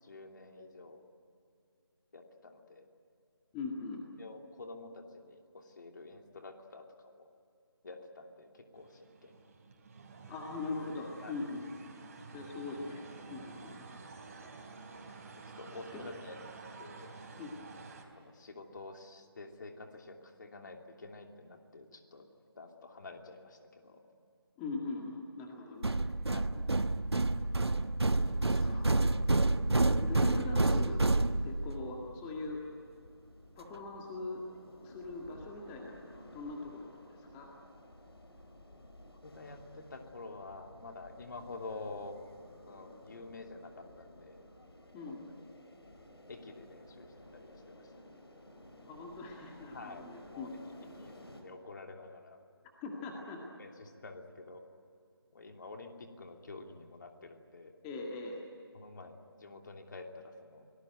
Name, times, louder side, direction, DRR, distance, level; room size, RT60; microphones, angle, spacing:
voice 1, 0.0-1.0 2.1-2.9 4.2-7.3 7.8-9.4 11.2-11.4 15.6-16.4 16.8-17.1 18.1-22.3 22.5-24.0 26.3-26.5 39.2-42.2 42.7-44.4 45.1-45.2 46.3-47.9 49.7-50.5 51.0-52.4 53.6-54.7 55.3-57.7 58.7-60.7, left 3 dB, 50° left, 4 dB, 2.9 m, -48 dB
voice 2, 3.5-4.0 10.3-11.8 12.3-14.0 15.9-16.0 17.4-17.5 24.6-26.0 26.6-26.7 28.1-29.0 29.9-31.0 31.4-32.7 33.6-34.4 34.8-37.5 44.9-45.2 48.9-50.6 52.8-53.4 57.8-58.4, left 3 dB, 15° left, 0 dB, 2.0 m, -41 dB
sound 1, 8.8-18.0, right 4 dB, 35° right, 3.8 m, -50 dB
sound 2, 25.8-31.8, right 2 dB, 85° right, 1.2 m, -29 dB
sound 3, 31.5-51.4, left 1 dB, 75° left, 5.0 m, -55 dB
29.0 x 19.0 x 9.3 m, 2.4 s
figure-of-eight pair, 160°, 13 cm